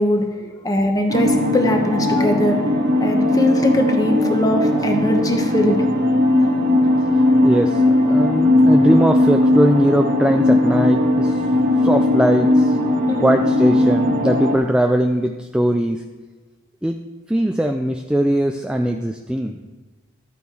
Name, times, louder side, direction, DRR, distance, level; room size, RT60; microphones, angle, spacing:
voice 1, 0.0-2.6 3.0-5.9 13.1-13.4, left 1 dB, 15° left, 4 dB, 1.1 m, -20 dB
sound 1, 1.1-14.6, left 1 dB, 50° right, 1.5 m, -18 dB
voice 2, 7.4-11.4 11.8-12.8 13.2-16.0 16.8-17.0 17.3-19.6, equal, 5° right, 4 dB, 0.3 m, -20 dB
12.5 x 8.4 x 4.8 m, 1.2 s
head